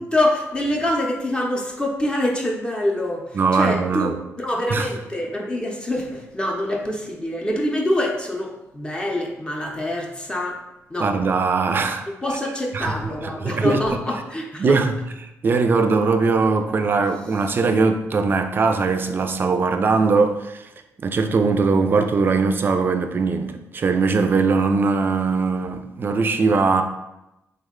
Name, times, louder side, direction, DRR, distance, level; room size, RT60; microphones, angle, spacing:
voice 1, 0.0-10.6 10.9-11.1 12.2-14.8, left 1 dB, 15° left, 0 dB, 0.5 m, -25 dB
voice 2, 3.3-4.2 4.7-4.9 11.0-12.1 12.7-14.0 14.6-20.7 21.0-26.8, right 4 dB, 40° right, 6 dB, 0.3 m, -20 dB
3.4 x 2.1 x 3.6 m, 0.92 s
cardioid pair, 110°, 6 cm